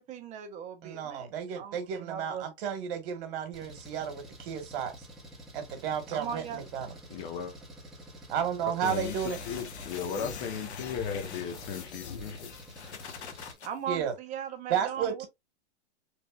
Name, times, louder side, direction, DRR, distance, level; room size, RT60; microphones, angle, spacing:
voice 1, 0.0-2.5 6.1-6.6 13.6-15.2, right 8 dB, 20° right, 0.6 m, -39 dB
voice 2, 0.8-5.1 5.5-6.9 8.3-9.4 13.9-14.1 14.7-15.3, right 8 dB, 55° right, 1.3 m, -33 dB
Engine, 3.5-13.6, equal, ahead, 0.9 m, -49 dB
voice 3, 7.1-7.5 8.8-12.4, left 7 dB, 35° left, 0.8 m, -36 dB
sound 1, 8.8-13.7, left 6 dB, 85° left, 0.8 m, -42 dB
3.2 x 2.6 x 2.3 m
hypercardioid pair, 130°, 33 cm